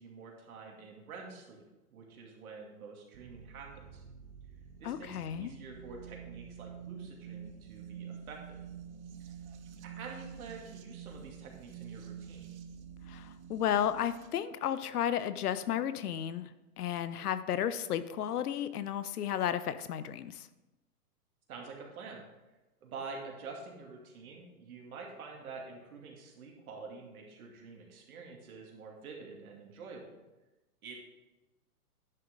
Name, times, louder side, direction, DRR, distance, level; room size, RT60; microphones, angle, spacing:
voice 1, 0.0-1.6 1.9-4.0 4.8-8.6 9.8-12.5 21.5-22.2 22.8-30.2 30.8-31.0, right 4 dB, 65° right, 0 dB, 2.5 m, -47 dB
sound 1, 3.1-14.3, right 8 dB, 45° right, 0.9 m, -48 dB
voice 2, 4.8-5.5 13.1-16.5 16.8-20.5, left 10 dB, 75° left, 13 dB, 0.8 m, -33 dB
10.0 x 6.6 x 3.9 m, 1.0 s
hypercardioid pair, 150°, 46 cm